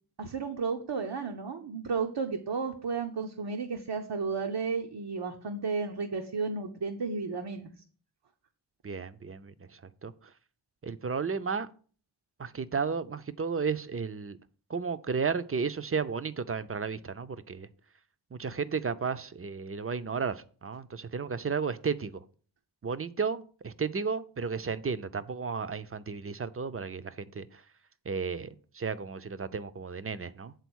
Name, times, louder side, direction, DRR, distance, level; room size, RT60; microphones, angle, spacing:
voice 1, 0.2-7.7, right 5 dB, 75° right, 0.8 m, -33 dB
voice 2, 8.8-10.1 10.8-11.7 12.4-14.4 14.7-17.7 18.3-22.2 22.8-27.6 28.1-30.5, right 5 dB, 35° right, 0.5 m, -33 dB
8.2 x 3.9 x 6.2 m
wide cardioid pair, 75°, 41 cm